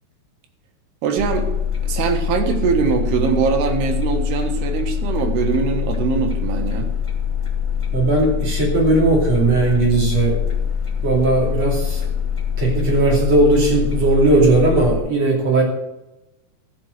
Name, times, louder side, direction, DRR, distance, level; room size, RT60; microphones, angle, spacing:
voice 1, 1.0-1.5 1.9-6.9, right 6 dB, 90° right, 4 dB, 3.5 m, -22 dB
sound 1, 1.2-15.0, left 8 dB, 25° left, 0.6 m, -24 dB
voice 2, 7.9-10.4 11.0-12.0 12.6-15.6, right 2 dB, 45° right, -2 dB, 3.7 m, -17 dB
13.5 x 7.2 x 6.6 m, 0.97 s
omnidirectional pair, 4.5 m